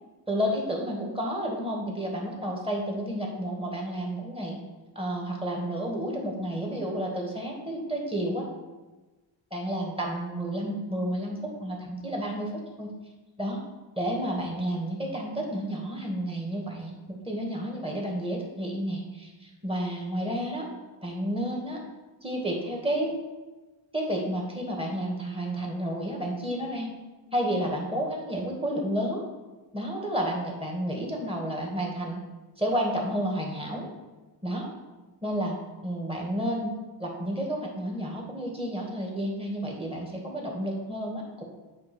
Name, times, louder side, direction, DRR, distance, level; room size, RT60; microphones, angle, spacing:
voice 1, 0.3-4.6 5.0-8.4 9.5-12.5 12.8-12.9 13.4-13.6 14.0-20.7 21.0-21.8 22.2-23.1 23.9-26.9 27.3-29.2 29.7-32.2 32.6-33.9 34.4-34.7 35.2-35.6 35.8-36.7 37.0-41.4, equal, 10° right, -1 dB, 2.0 m, -31 dB
8.5 x 3.0 x 6.2 m, 1.2 s
cardioid pair, 75°, 48 cm